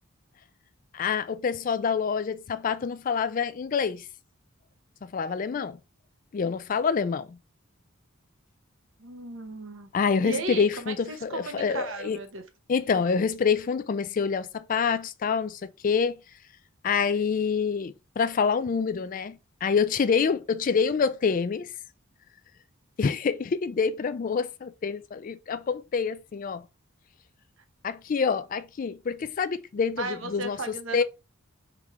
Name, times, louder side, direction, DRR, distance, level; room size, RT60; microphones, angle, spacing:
voice 1, 0.9-4.1 5.0-5.8 6.3-7.4 9.9-12.2 12.7-16.2 16.8-21.7 23.0-26.6 27.8-30.6 30.9-31.0, left 5 dB, 40° left, 0.3 m, -27 dB
voice 2, 9.0-9.9 10.2-12.4 30.0-31.0, right 3 dB, 65° right, 0.9 m, -35 dB
3.6 x 3.2 x 3.4 m
head